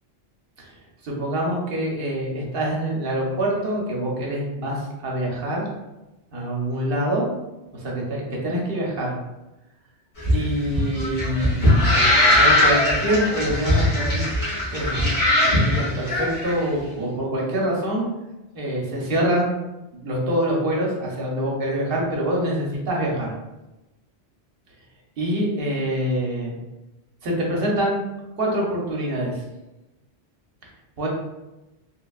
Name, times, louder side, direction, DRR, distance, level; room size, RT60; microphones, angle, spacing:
voice 1, 1.0-5.6 6.3-7.3 7.7-9.1 10.3-11.9 12.4-14.3 14.7-18.1 18.5-19.6 19.9-23.3 25.2-26.5 27.2-28.0 28.4-29.4 31.0-31.1, right 1 dB, 60° right, -2 dB, 0.9 m, -25 dB
sound 1, 10.2-16.5, left 1 dB, 80° left, 1.4 m, -20 dB
3.4 x 2.1 x 2.3 m, 1.0 s
omnidirectional pair, 1.1 m